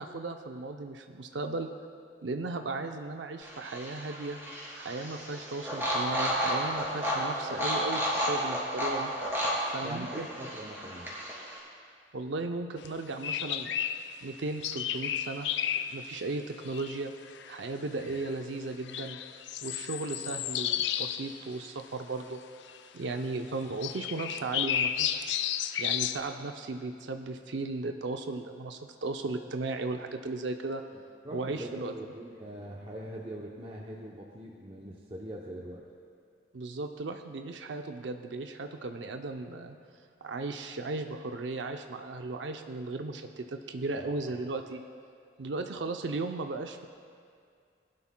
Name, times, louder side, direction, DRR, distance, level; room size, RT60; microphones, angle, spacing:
voice 1, 0.0-1.7 2.2-4.4 4.8-9.1 9.7-10.3 12.1-13.7 14.2-15.5 15.7-17.1 17.5-19.2 19.6-22.4 22.9-25.4 25.8-30.8 31.3-31.9 36.5-39.8 40.2-44.8 45.4-46.9, right 3 dB, 85° right, 5 dB, 0.6 m, -36 dB
sound 1, 3.4-11.6, equal, 15° right, 2.7 m, -32 dB
voice 2, 9.8-11.1 30.9-35.9 44.0-44.4, right 1 dB, 30° right, -3 dB, 0.7 m, -42 dB
sound 2, 12.9-13.0 13.2-14.1 14.6-16.0 16.6-17.0 17.2-17.6 18.0-18.4 18.8-21.4 21.6-21.8 22.7-22.8 23.8-26.2, left 10 dB, 80° left, 0.4 m, -32 dB
19.0 x 11.5 x 2.2 m, 2.3 s
head